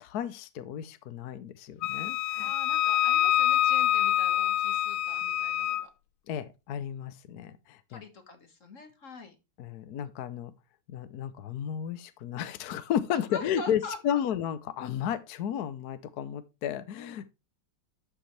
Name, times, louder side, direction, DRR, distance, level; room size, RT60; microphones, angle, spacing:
voice 1, 0.0-2.5 6.3-8.0 9.6-10.5 10.9-17.3, left 9 dB, 60° left, 1.1 m, -33 dB
Wind instrument woodwind instrument, 1.8-5.9, left 13 dB, 75° left, 1.4 m, -26 dB
voice 2, 2.4-5.9 7.9-9.4 13.1-14.2, left 4 dB, 40° left, 1.9 m, -44 dB
11.5 x 6.9 x 3.2 m
omnidirectional pair, 2.3 m